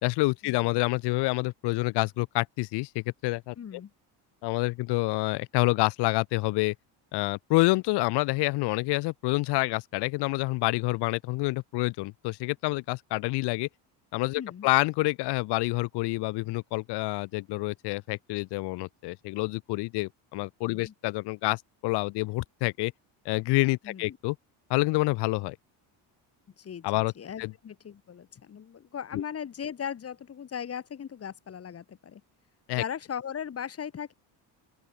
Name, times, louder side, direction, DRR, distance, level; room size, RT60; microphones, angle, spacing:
voice 1, 0.0-3.6 4.4-6.7 7.1-13.7 14.1-22.9 23.3-24.4 24.7-25.6 26.8-27.1 27.4-27.5 29.1-29.2 32.7-32.8, left 22 dB, 60° left, 0.6 m, -27 dB
voice 2, 3.6-3.9 14.3-14.7 20.6-20.9 23.8-24.2 26.6-32.2 32.7-34.1, left 8 dB, 30° left, 3.0 m, -38 dB
open air
cardioid pair, 140°, 45 cm